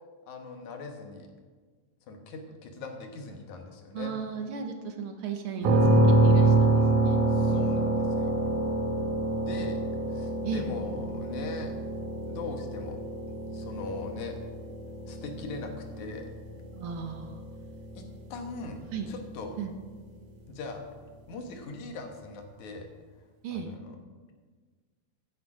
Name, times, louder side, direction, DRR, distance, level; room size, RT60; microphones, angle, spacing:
voice 1, 0.3-1.3 2.1-4.2 7.3-8.4 9.4-9.8 10.1-11.7 12.3-13.0 13.5-14.3 15.1-15.7 16.0-16.3 17.9-18.8 19.1-19.6 20.5-20.8 21.3-22.9 23.5-24.0, left 3 dB, 80° left, 4 dB, 2.7 m, -40 dB
voice 2, 3.9-7.2 10.4-10.6 16.8-17.4 18.9-19.1 19.6-19.7 23.4-23.7, right 6 dB, 65° right, 4 dB, 1.4 m, -36 dB
sound 1, 5.6-19.4, right 2 dB, 80° right, 2.8 m, -27 dB
15.5 x 8.7 x 4.9 m, 1.5 s
omnidirectional pair, 3.4 m